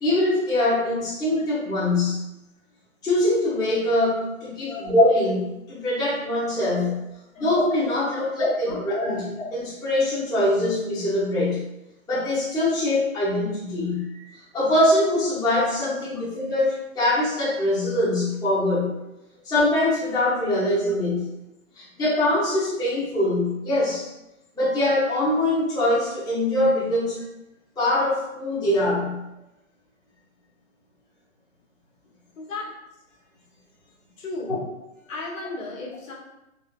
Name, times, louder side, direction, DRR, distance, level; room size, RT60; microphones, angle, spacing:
voice 1, 0.0-2.2 3.0-6.9 7.4-11.6 12.1-14.2 14.5-18.9 19.4-21.2 21.8-24.1 24.5-27.2 27.8-29.2, left 1 dB, 10° left, -10 dB, 1.0 m, -23 dB
voice 2, 32.4-32.7 34.2-34.7 35.1-36.1, left 2 dB, 65° left, -2 dB, 1.3 m, -35 dB
3.8 x 3.3 x 2.4 m, 0.90 s
hypercardioid pair, 130°, 42 cm